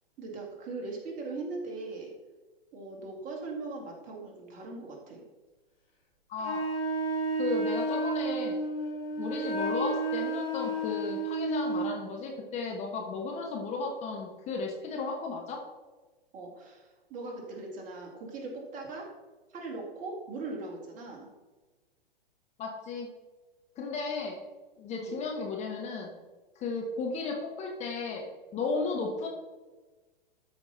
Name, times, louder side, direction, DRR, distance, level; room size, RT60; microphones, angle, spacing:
voice 1, 0.2-2.1 2.7-5.2 16.3-19.1 19.5-21.3 24.9-25.2, right 3 dB, 25° right, 0 dB, 2.2 m, -40 dB
voice 2, 6.3-6.6 7.3-8.6 9.2-15.6 22.6-23.1 23.8-24.4 24.8-26.1 26.6-28.3 28.5-29.3, left 3 dB, 25° left, 0 dB, 1.2 m, -34 dB
Wind instrument woodwind instrument, 6.4-11.9, right 2 dB, 80° left, 2.3 m, -31 dB
12.5 x 5.2 x 4.0 m, 1.2 s
figure-of-eight pair, 110°, 29 cm